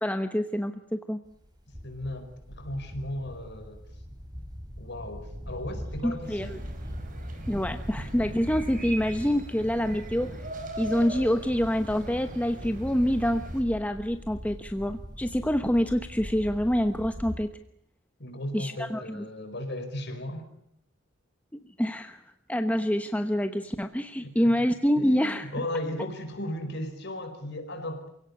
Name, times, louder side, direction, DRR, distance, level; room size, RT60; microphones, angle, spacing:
voice 1, 0.0-1.2 6.0-6.6 7.5-10.4 10.8-17.5 18.5-19.2 21.8-22.2 22.5-25.5, equal, 10° left, 7 dB, 1.0 m, -26 dB
sound 1, 1.2-17.4, equal, 20° right, 5.1 m, -41 dB
voice 2, 1.8-3.8 4.8-6.5 18.2-20.5 24.2-24.5 25.0-28.1, left 1 dB, 60° left, 7 dB, 4.9 m, -36 dB
sound 2, 6.2-13.6, right 1 dB, 45° right, 5.1 m, -41 dB
28.5 x 17.5 x 9.8 m, 0.73 s
head